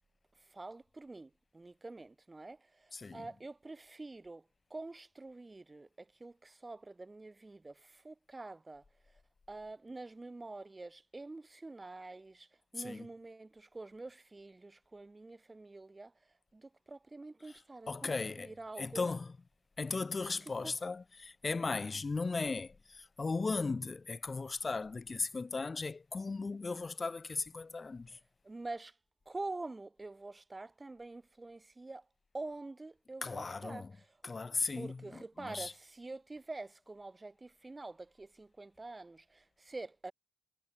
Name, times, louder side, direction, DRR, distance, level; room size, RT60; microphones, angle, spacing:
voice 1, 0.5-4.4 4.7-8.8 9.5-12.5 12.7-16.1 16.5-19.1 20.6-20.7 28.4-28.9 29.3-32.0 32.3-34.1 34.7-40.1, right 2 dB, 20° right, 3.1 m, -46 dB
voice 2, 2.9-3.3 12.8-13.0 17.9-18.5 18.8-19.3 19.8-28.2 33.2-33.9 34.2-35.7, left 4 dB, 30° left, 1.1 m, -37 dB
cardioid pair, 90°, 0 cm